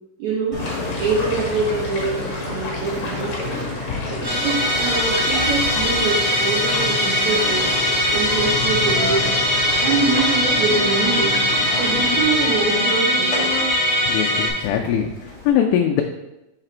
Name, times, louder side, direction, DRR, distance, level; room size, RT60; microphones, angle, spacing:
voice 1, 0.2-0.6 1.0-3.6 4.0-7.8 8.1-9.3 9.8-11.4 11.8-13.5, right 4 dB, 75° right, -5 dB, 1.7 m, -24 dB
Engine, 0.5-15.5, left 2 dB, 40° left, 1.6 m, -30 dB
sound 1, 0.6-12.1, left 2 dB, 60° left, 1.8 m, -34 dB
Musical instrument, 4.2-14.5, left 1 dB, 40° right, 2.0 m, -21 dB
voice 2, 14.0-16.0, left 9 dB, 80° left, 2 dB, 2.2 m, -21 dB
4.9 x 4.9 x 4.4 m, 0.93 s
omnidirectional pair, 4.3 m